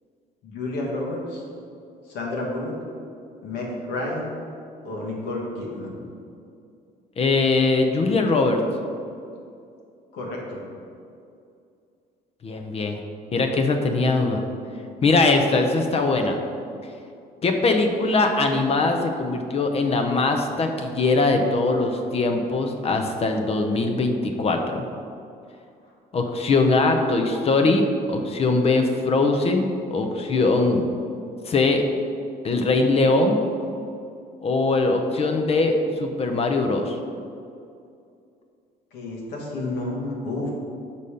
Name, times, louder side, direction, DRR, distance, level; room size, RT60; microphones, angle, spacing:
voice 1, 0.4-1.4 2.0-2.7 3.4-4.3 4.8-6.0 10.1-10.6 38.9-40.5, left 2 dB, 85° left, -2 dB, 1.4 m, -30 dB
voice 2, 7.2-8.6 12.4-13.0 13.3-14.4 15.0-16.4 17.4-24.8 26.1-30.9 31.5-31.8 32.4-33.4 34.4-36.9, left 3 dB, 35° left, 5 dB, 0.6 m, -21 dB
5.4 x 4.1 x 5.0 m, 2.5 s
cardioid pair, 110°, 17 cm